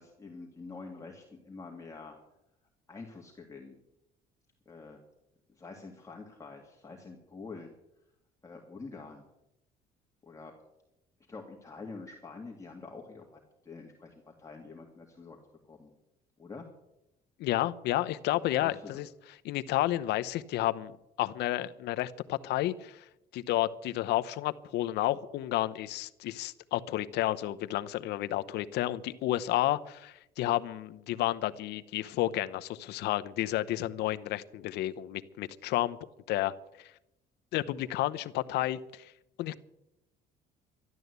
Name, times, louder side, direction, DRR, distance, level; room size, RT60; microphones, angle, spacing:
voice 1, 0.0-2.2 2.9-3.8 4.7-5.0 5.5-7.7 8.4-9.2 10.2-10.5 11.3-15.4 15.6-15.9 16.4-16.7 18.6-19.0, left 3 dB, 20° left, 0 dB, 2.3 m, -46 dB
voice 2, 17.4-19.1 19.4-23.0 23.3-36.0 36.3-36.5 36.8-36.9 37.5-39.1 39.4-39.6, left 15 dB, 80° left, 13 dB, 0.8 m, -31 dB
12.5 x 12.5 x 8.1 m, 0.88 s
cardioid pair, 110°, 17 cm